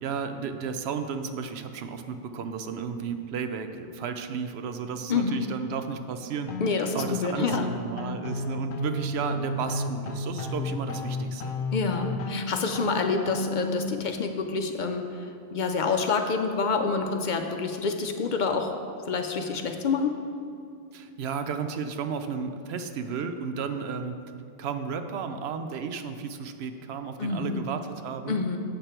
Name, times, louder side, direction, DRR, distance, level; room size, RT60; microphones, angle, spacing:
voice 1, 0.0-6.5 6.9-11.5 20.9-24.2 24.6-28.4, right 6 dB, 85° right, 8 dB, 0.9 m, -33 dB
voice 2, 5.1-5.4 6.6-7.7 11.7-18.7 19.1-20.2 27.2-27.7 28.3-28.6, left 4 dB, 55° left, 5 dB, 0.6 m, -27 dB
sound 1, 6.5-13.9, left 2 dB, 85° left, 0.8 m, -32 dB
7.7 x 6.6 x 4.4 m, 2.5 s
omnidirectional pair, 1.0 m